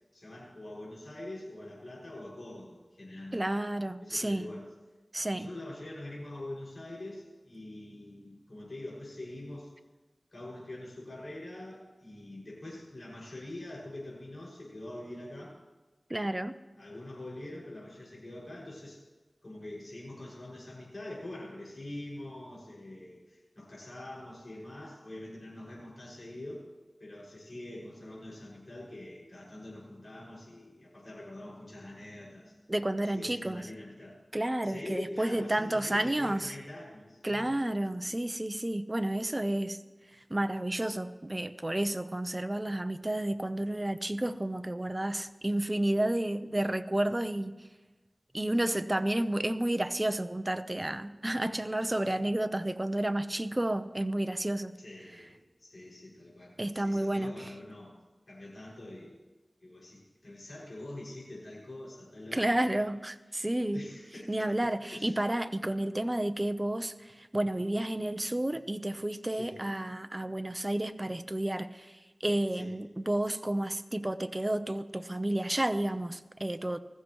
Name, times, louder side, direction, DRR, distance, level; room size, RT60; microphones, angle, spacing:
voice 1, 0.1-3.5 4.0-4.6 5.3-9.7 10.3-15.5 16.8-19.0 19.4-26.6 27.0-32.6 33.1-34.2 34.6-37.5 54.8-58.0 58.3-59.1 59.6-62.9 63.3-63.5 63.7-65.1 69.3-69.6 72.5-72.7, left 1 dB, 60° left, -5 dB, 6.1 m, -44 dB
voice 2, 3.3-4.4 5.1-5.5 16.1-16.6 32.7-33.6 34.3-36.5 37.2-39.8 40.3-47.6 48.3-54.8 56.6-57.3 62.3-63.8 64.3-76.8, right 1 dB, 30° right, 10 dB, 0.7 m, -31 dB
20.0 x 15.0 x 3.1 m, 1.2 s
wide cardioid pair, 45°, 0 cm